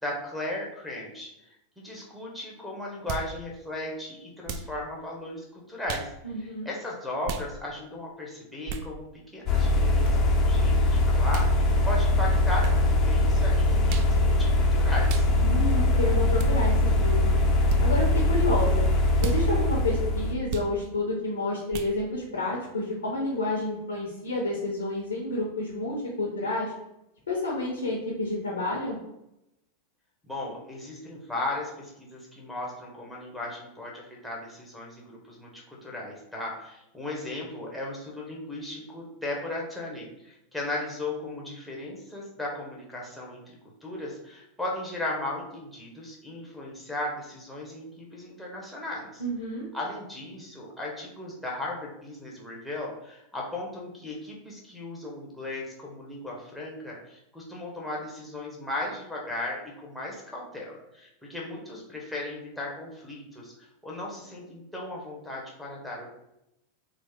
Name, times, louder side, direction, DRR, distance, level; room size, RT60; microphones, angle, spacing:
voice 1, 0.0-1.3 1.8-6.1 6.4-9.1 9.3-15.2 19.8-19.9 30.2-49.2 49.7-66.1, left 1 dB, ahead, -4 dB, 1.1 m, -36 dB
sound 1, 3.1-3.3 4.4-4.7 5.9-6.1 7.2-7.5 8.7-8.9 10.0-10.2 11.3-11.5 12.6-12.8 13.9-14.1 15.1-15.3 16.4-16.5 17.7-17.8 19.2-19.4 20.5-20.7 21.7-21.9, right 5 dB, 55° right, 0.3 m, -34 dB
voice 2, 6.2-6.7 15.4-17.3 17.8-18.9 19.2-26.7 27.3-29.0 49.2-49.6, left 2 dB, 85° left, -2 dB, 0.7 m, -30 dB
sound 2, 9.5-20.3, left 2 dB, 40° left, 0.6 m, -22 dB
3.2 x 2.1 x 3.5 m, 0.85 s
hypercardioid pair, 90°, 0 cm